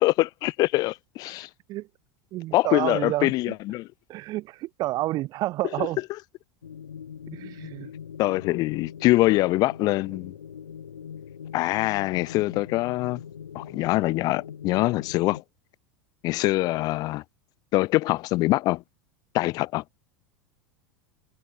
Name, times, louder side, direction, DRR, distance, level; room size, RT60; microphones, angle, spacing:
voice 1, 0.0-1.5 2.5-3.9 5.8-5.9 8.2-10.3 11.5-13.2 13.5-15.4 16.2-17.2 17.7-18.8 19.3-19.8, left 19 dB, 40° left, 0.4 m, -24 dB
voice 2, 2.3-3.3 4.1-6.0 7.3-7.9, right 17 dB, 40° right, 0.9 m, -29 dB
sound 1, 6.6-15.4, left 8 dB, 75° left, 1.2 m, -42 dB
figure-of-eight pair, 85°, 10 cm